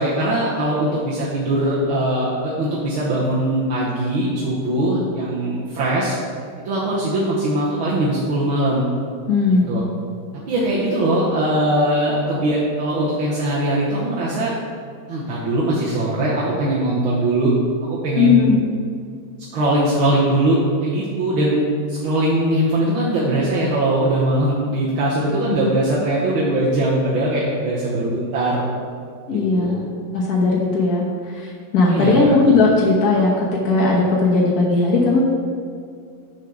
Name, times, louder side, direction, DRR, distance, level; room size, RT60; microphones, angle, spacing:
voice 1, 0.0-6.2 6.7-8.9 9.7-9.8 10.4-14.5 15.1-17.5 17.8-18.5 19.5-28.7 29.3-29.8 31.9-32.4, right 1 dB, 80° right, -7 dB, 1.9 m, -21 dB
voice 2, 9.3-9.7 18.1-18.6 25.5-25.7 29.3-29.8 30.1-35.2, left 3 dB, 55° left, -4 dB, 1.4 m, -17 dB
6.6 x 5.1 x 5.8 m, 2.2 s
omnidirectional pair, 2.2 m